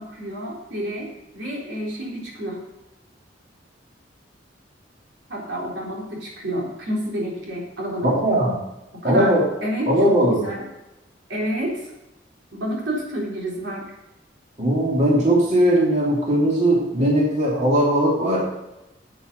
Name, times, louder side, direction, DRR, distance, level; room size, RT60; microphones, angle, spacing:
voice 1, 0.0-2.6 5.3-8.1 9.0-9.3 9.6-10.6 11.3-11.8 12.5-13.8, equal, 75° right, -3 dB, 3.9 m, -29 dB
voice 2, 8.0-8.6 9.0-9.4 9.9-10.4 14.6-18.4, right 1 dB, 40° right, -4 dB, 3.1 m, -19 dB
9.5 x 8.7 x 6.7 m, 0.95 s
head